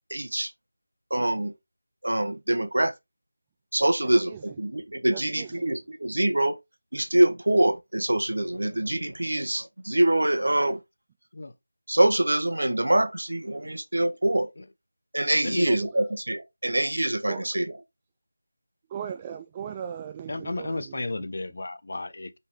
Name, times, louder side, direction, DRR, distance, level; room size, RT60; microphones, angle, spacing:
voice 1, 0.1-0.5 1.1-1.5 2.0-2.9 3.7-6.6 6.9-10.8 11.9-14.5 15.1-17.7, right 1 dB, 75° right, 1.2 m, -24 dB
voice 2, 4.0-4.5 5.1-5.7 15.6-16.0 17.3-17.5 18.9-21.0, right 8 dB, 15° right, 0.3 m, -38 dB
voice 3, 15.4-15.7 20.3-22.4, left 2 dB, 50° left, 0.9 m, -33 dB
5.4 x 5.4 x 3.2 m
figure-of-eight pair, 170°, 0 cm